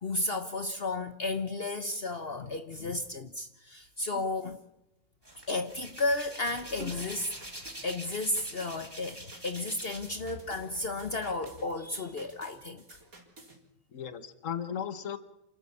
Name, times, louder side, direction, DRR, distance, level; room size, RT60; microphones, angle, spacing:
voice 1, 0.0-4.6 5.5-7.3 7.8-12.8, left 2 dB, 45° left, 8 dB, 1.3 m, -33 dB
Hands, 5.2-10.2 10.6-11.5, right 1 dB, 15° right, 4.1 m, -45 dB
sound 1, 6.2-13.6, right 2 dB, 85° right, 4.3 m, -54 dB
voice 2, 13.9-15.2, left 8 dB, 65° left, 12 dB, 1.7 m, -37 dB
28.5 x 13.0 x 8.5 m, 0.91 s
omnidirectional pair, 1.5 m